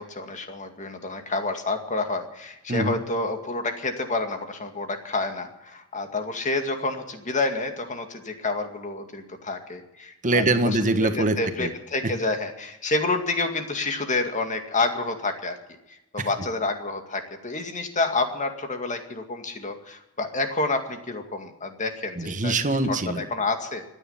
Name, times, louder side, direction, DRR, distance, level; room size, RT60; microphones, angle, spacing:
voice 1, 0.0-10.7 11.2-15.6 16.1-22.5 23.2-23.9, left 3 dB, 35° left, 6 dB, 2.2 m, -29 dB
voice 2, 2.7-3.0 10.2-11.7 12.0-12.1 16.2-16.3 22.1-23.3, right 2 dB, 35° right, 8 dB, 1.5 m, -24 dB
25.5 x 9.9 x 5.7 m, 0.91 s
head